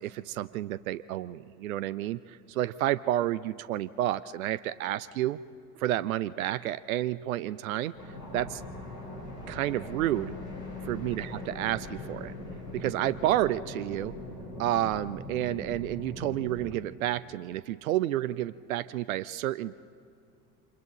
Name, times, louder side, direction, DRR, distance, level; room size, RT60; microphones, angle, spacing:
voice 1, 0.0-5.4 5.8-7.9 8.3-8.6 9.5-10.3 10.8-11.3 11.6-12.3 12.7-14.1 14.6-19.8, right 13 dB, 65° right, 18 dB, 0.6 m, -30 dB
sound 1, 7.9-16.7, left 2 dB, 85° left, 3.9 m, -41 dB
29.0 x 26.0 x 3.9 m, 2.4 s
figure-of-eight pair, 75°, 46 cm